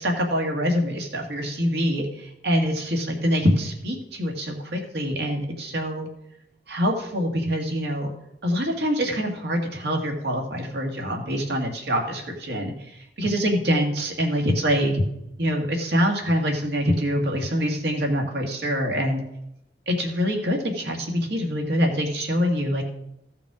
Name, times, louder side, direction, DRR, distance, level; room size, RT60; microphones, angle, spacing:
voice 1, 0.0-6.1 6.7-8.1 8.4-15.0 15.4-19.2 19.9-22.8, equal, 70° right, 2 dB, 1.9 m, -25 dB
15.0 x 5.8 x 4.9 m, 0.81 s
head